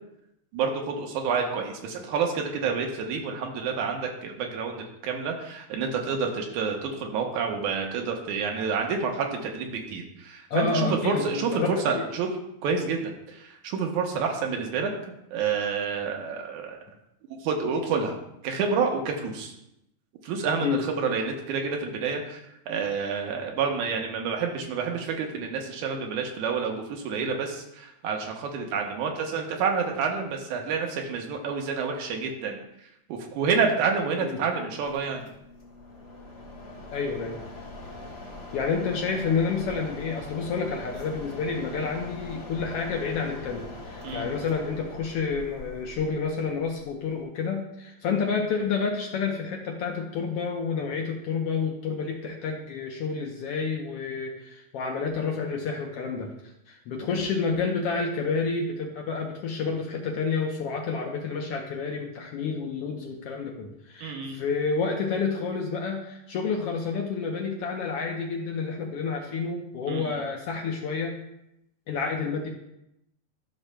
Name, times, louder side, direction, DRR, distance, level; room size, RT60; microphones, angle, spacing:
voice 1, 0.5-12.3 12.6-14.9 15.3-16.8 17.4-18.2 18.4-19.5 20.2-32.6 33.1-35.2 44.0-44.3 64.0-64.4 69.9-70.2, right 5 dB, 90° right, 2 dB, 2.4 m, -28 dB
voice 2, 10.5-12.1 20.6-20.8 34.2-34.4 36.9-37.4 38.5-56.3 56.7-71.2 71.9-72.5, left 5 dB, 70° left, 1 dB, 1.5 m, -29 dB
Mechanisms, 34.8-47.2, left 2 dB, 45° left, 2.6 m, -42 dB
13.0 x 6.3 x 2.2 m, 0.83 s
omnidirectional pair, 3.3 m